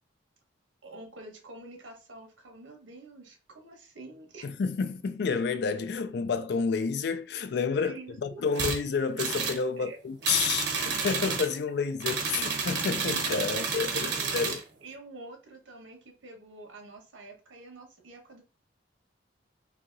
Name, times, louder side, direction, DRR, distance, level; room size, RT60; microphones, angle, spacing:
voice 1, 0.8-4.5 7.8-8.6 9.8-10.0 13.5-14.3 14.8-18.4, right 2 dB, 85° right, 1.1 m, -47 dB
voice 2, 4.4-14.6, left 5 dB, 60° left, 0.3 m, -30 dB
sound 1, 8.5-8.8 9.2-9.6 10.2-11.5 12.0-14.6, right 5 dB, 60° right, 0.8 m, -30 dB
2.8 x 2.8 x 3.8 m
head